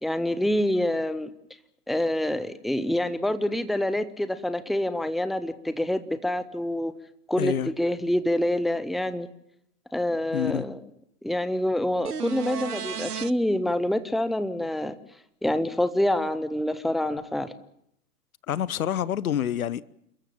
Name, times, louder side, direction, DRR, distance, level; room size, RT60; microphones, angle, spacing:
voice 1, 0.0-1.3 1.9-6.9 7.3-9.3 9.9-10.8 11.2-14.9 15.4-17.5, left 1 dB, ahead, 0.8 m, -26 dB
voice 2, 7.4-7.7 10.3-10.6 18.5-19.8, left 10 dB, 65° left, 1.0 m, -27 dB
sound 1, 12.0-13.3 17.2-17.3, right 7 dB, 85° right, 0.9 m, -33 dB
29.0 x 14.0 x 8.8 m
figure-of-eight pair, 105°, 45 cm